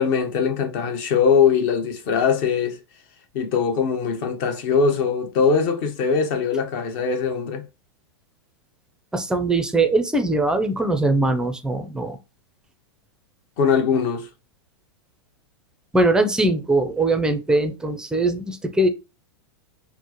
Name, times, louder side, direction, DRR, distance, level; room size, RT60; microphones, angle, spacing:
voice 1, 0.0-2.8 3.3-7.6 13.6-14.3, left 6 dB, 50° left, 1.0 m, -21 dB
voice 2, 9.1-12.2 15.9-18.9, right 2 dB, 5° right, 0.5 m, -21 dB
4.3 x 2.1 x 2.9 m
hypercardioid pair, 120°, 14 cm